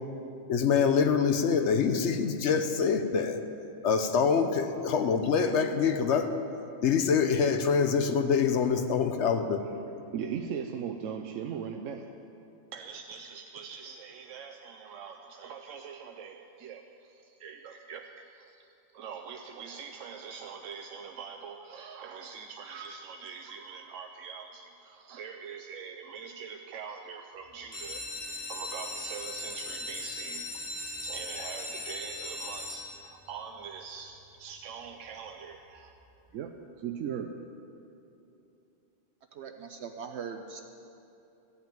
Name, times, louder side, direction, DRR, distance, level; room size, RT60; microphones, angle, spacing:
voice 1, 0.5-3.4 3.8-6.3 6.8-9.6, left 6 dB, 70° left, 8 dB, 1.0 m, -25 dB
voice 2, 10.1-12.1 12.7-18.7 18.9-30.5 30.7-35.9 36.3-37.5, right 7 dB, 90° right, 4 dB, 1.0 m, -41 dB
sound 1, 27.6-33.3 34.0-34.4 34.8-34.9 35.2-35.3 35.7-35.8, left 2 dB, 40° left, 1.4 m, -39 dB
voice 3, 39.3-40.6, right 6 dB, 70° right, 5 dB, 0.8 m, -40 dB
13.5 x 5.8 x 9.0 m, 2.8 s
omnidirectional pair, 1.3 m